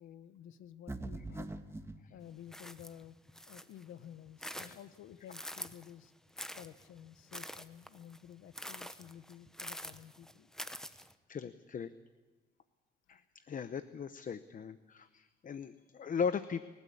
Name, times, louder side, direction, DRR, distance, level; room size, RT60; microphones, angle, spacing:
voice 1, 0.0-1.5 2.1-3.2 3.5-6.1 6.5-10.5 13.1-13.2, left 10 dB, 80° left, 14 dB, 1.1 m, -52 dB
sound 1, 0.9-2.0, right 2 dB, 15° right, 1.5 m, -42 dB
sound 2, 2.5-3.8 4.2-5.9 6.4-11.1, equal, 5° left, 1.0 m, -46 dB
voice 2, 11.3-11.9 13.1-16.7, left 6 dB, 45° left, 13 dB, 0.8 m, -38 dB
29.0 x 13.0 x 8.5 m, 1.3 s
cardioid pair, 90°, 20 cm